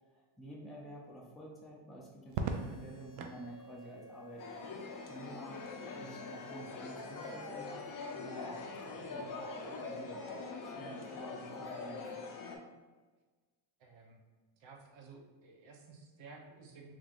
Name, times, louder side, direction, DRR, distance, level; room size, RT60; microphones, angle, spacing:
voice 1, 0.1-4.4 5.1-5.6 5.9-12.1, equal, ahead, -4 dB, 0.6 m, -50 dB
Crackle, 2.3-3.4 5.0-5.6, right 4 dB, 85° right, 0.6 m, -39 dB
sound 1, 2.4-10.4, right 1 dB, 25° left, 1.0 m, -55 dB
sound 2, 4.4-12.6, left 4 dB, 45° left, 0.6 m, -44 dB
voice 2, 13.8-14.2 14.6-17.0, right 4 dB, 65° right, 1 dB, 0.9 m, -54 dB
3.7 x 3.2 x 2.5 m, 1.3 s
cardioid pair, 105°, 49 cm